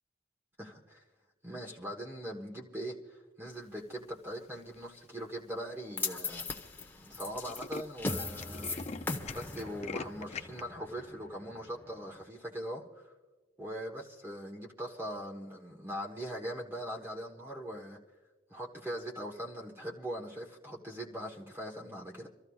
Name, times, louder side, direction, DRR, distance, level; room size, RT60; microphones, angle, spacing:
voice 1, 0.6-1.0 1.4-6.5 7.0-8.8 9.3-13.1 13.6-18.0 18.5-22.3, equal, 10° right, -2 dB, 1.2 m, -41 dB
Tools, 4.5-5.0 5.6-5.7 5.9-6.0 6.2-6.4 6.7-6.9 7.1-10.6, left 4 dB, 35° left, 0.5 m, -43 dB
sound 1, 6.0-12.2, left 3 dB, 10° left, 0.9 m, -39 dB
28.0 x 14.0 x 2.4 m, 1.2 s
head